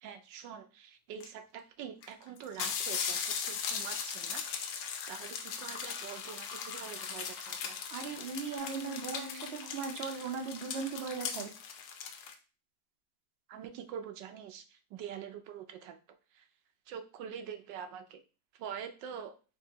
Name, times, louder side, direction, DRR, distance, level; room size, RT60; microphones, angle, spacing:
voice 1, 0.0-4.4 4.7-7.8 13.5-16.0 16.3-16.4 16.9-18.2 18.6-19.4, right 8 dB, 85° right, 7 dB, 1.3 m, -45 dB
sound 1, 1.2-1.3 2.0-2.1 2.4-12.3, left 7 dB, 80° left, 1.3 m, -39 dB
voice 2, 7.9-11.5, right 5 dB, 60° right, 5 dB, 0.6 m, -38 dB
sound 2, 8.5-11.1, left 1 dB, 10° left, 0.8 m, -48 dB
4.6 x 2.7 x 3.9 m, 0.35 s
omnidirectional pair, 1.9 m